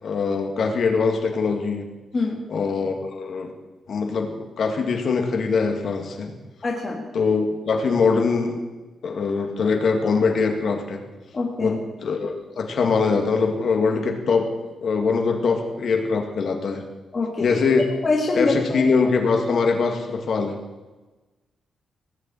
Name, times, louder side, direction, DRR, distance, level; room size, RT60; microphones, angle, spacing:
voice 1, 0.0-1.9 2.5-3.5 3.9-6.3 7.1-8.6 9.0-11.0 11.6-14.5 14.8-16.8 17.4-17.9 18.3-20.6, left 4 dB, 50° left, 3 dB, 2.2 m, -22 dB
voice 2, 6.6-7.1 11.3-11.8 17.1-17.5 18.0-18.8, left 3 dB, 30° left, -1 dB, 1.8 m, -24 dB
18.0 x 6.9 x 9.1 m, 1.2 s
wide cardioid pair, 165°, 0 cm